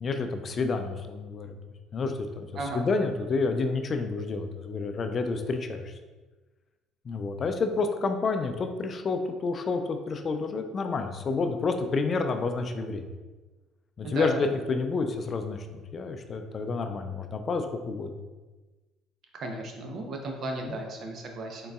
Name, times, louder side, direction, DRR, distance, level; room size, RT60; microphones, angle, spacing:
voice 1, 0.0-1.6 1.9-2.5 2.7-5.9 7.1-13.1 14.0-18.2 20.6-20.8, left 4 dB, 45° left, 6 dB, 0.4 m, -29 dB
voice 2, 14.0-14.4 19.3-21.7, right 2 dB, 55° right, 2 dB, 0.7 m, -34 dB
3.9 x 3.7 x 2.3 m, 1.2 s
supercardioid pair, 70°, 0 cm